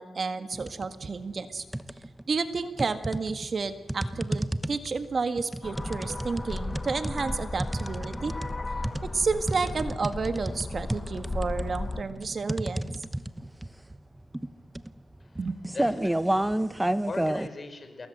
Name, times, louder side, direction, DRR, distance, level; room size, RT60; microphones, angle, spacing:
voice 1, 0.0-1.6 2.3-8.3 9.1-12.9 15.4-15.6, right 4 dB, 50° right, 9 dB, 1.8 m, -31 dB
sound 1, 0.5-0.9 1.3-2.2 2.8-17.5, right 1 dB, 10° right, 1.1 m, -31 dB
sound 2, 5.6-12.0, left 2 dB, 25° left, 1.9 m, -35 dB
voice 2, 15.7-18.1, left 3 dB, 40° left, 8 dB, 4.9 m, -41 dB
28.0 x 22.0 x 7.9 m, 1.2 s
cardioid pair, 75°, 0 cm